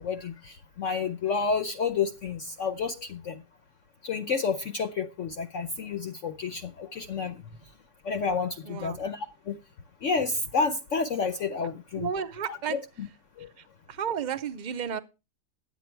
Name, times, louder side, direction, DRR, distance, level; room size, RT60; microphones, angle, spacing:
voice 1, 0.0-3.4 4.0-7.4 8.0-9.6 10.0-12.1 12.5-13.1 13.4-13.5, left 5 dB, 55° left, 1.0 m, -30 dB
voice 2, 8.6-9.0 12.0-12.8 13.6-15.0, right 7 dB, 50° right, 0.5 m, -33 dB
11.0 x 8.3 x 4.5 m
omnidirectional pair, 1.8 m